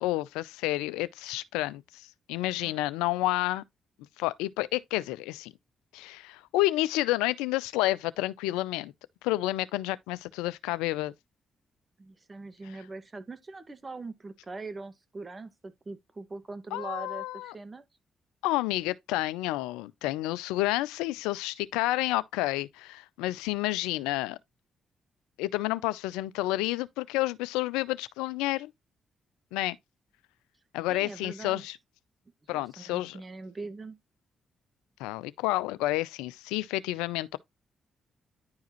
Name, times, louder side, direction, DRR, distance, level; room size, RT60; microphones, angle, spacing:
voice 1, 0.0-3.6 4.2-5.5 5.9-8.9 9.2-11.1 16.7-17.5 18.4-24.4 25.4-28.7 29.5-29.8 30.7-31.8 32.5-33.2 35.0-37.4, left 17 dB, 85° left, 0.5 m, -30 dB
voice 2, 12.0-17.8 30.9-31.6 32.5-34.0, right 3 dB, 35° right, 1.6 m, -42 dB
10.5 x 4.7 x 3.0 m
hypercardioid pair, 45°, 0 cm